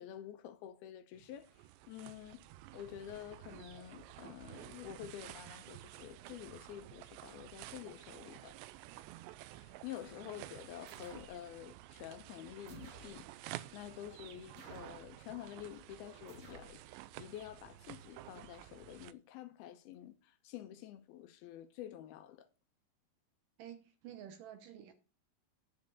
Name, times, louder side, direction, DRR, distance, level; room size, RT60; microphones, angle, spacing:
voice 1, 0.0-1.5 1.9-2.4 2.7-8.6 9.5-16.8 17.2-22.5, left 11 dB, 80° left, 2.5 m, -49 dB
sound 1, 1.2-19.1, right 15 dB, 90° right, 2.8 m, -52 dB
sound 2, 10.9-11.4 12.7-13.2 14.6-15.1 16.3-16.8, right 3 dB, 50° right, 3.6 m, -56 dB
voice 2, 23.6-24.9, right 10 dB, 70° right, 2.2 m, -50 dB
10.5 x 5.2 x 7.0 m
omnidirectional pair, 4.9 m